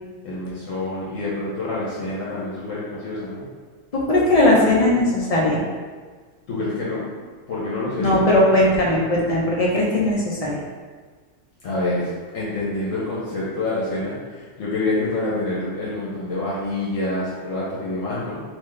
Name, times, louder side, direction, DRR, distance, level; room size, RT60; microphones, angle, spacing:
voice 1, 0.2-3.5 6.5-7.1 7.5-8.2 11.6-18.4, left 2 dB, 75° left, -7 dB, 1.2 m, -27 dB
voice 2, 3.9-5.6 8.0-10.6, left 1 dB, 35° left, -4 dB, 0.7 m, -18 dB
3.9 x 2.7 x 3.2 m, 1.5 s
omnidirectional pair, 1.3 m